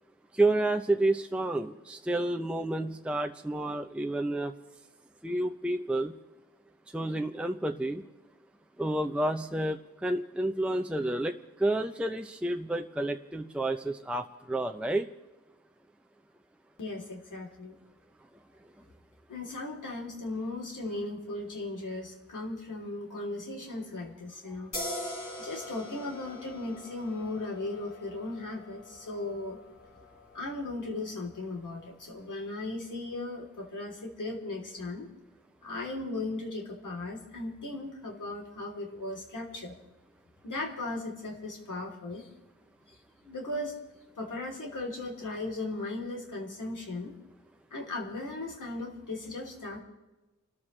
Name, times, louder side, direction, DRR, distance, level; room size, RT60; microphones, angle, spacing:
voice 1, 0.4-4.5 5.2-6.1 6.9-8.0 8.8-15.1, right 1 dB, 5° right, 5 dB, 0.7 m, -30 dB
voice 2, 16.8-17.8 19.3-24.7 25.4-29.6 30.3-35.1 35.6-39.8 40.4-42.3 42.9-43.8 44.2-47.1 47.7-49.8, left 2 dB, 85° left, 0 dB, 3.4 m, -37 dB
sound 1, 24.7-32.0, left 1 dB, 60° left, 5.0 m, -43 dB
30.0 x 13.5 x 3.3 m, 1.1 s
wide cardioid pair, 110°, 30 cm